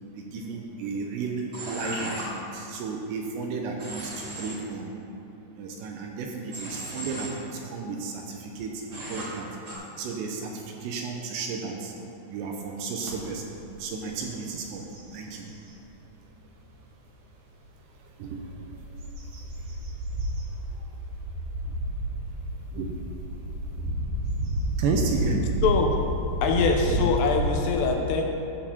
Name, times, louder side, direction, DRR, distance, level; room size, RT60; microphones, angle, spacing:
voice 1, 0.1-4.9 5.6-9.5 10.0-11.9 12.3-13.5 13.8-14.8 15.1-15.5 18.2-18.5 22.7-23.0 23.8-23.9 24.8-25.6 26.9-27.0, right 4 dB, 75° right, 1 dB, 2.7 m, -33 dB
Human voice / Train, 1.5-2.2 3.8-4.5 6.5-7.3 8.9-9.2 9.7-9.8, right 1 dB, 35° right, 2.6 m, -36 dB
sound 1, 13.0-13.2 13.7-13.9 14.3-15.8 16.3-16.4 18.2-27.5, right 1 dB, 55° right, 2.4 m, -30 dB
voice 2, 26.4-28.2, left 5 dB, 75° left, 2 dB, 2.6 m, -23 dB
13.0 x 4.7 x 7.1 m, 2.7 s
omnidirectional pair, 5.5 m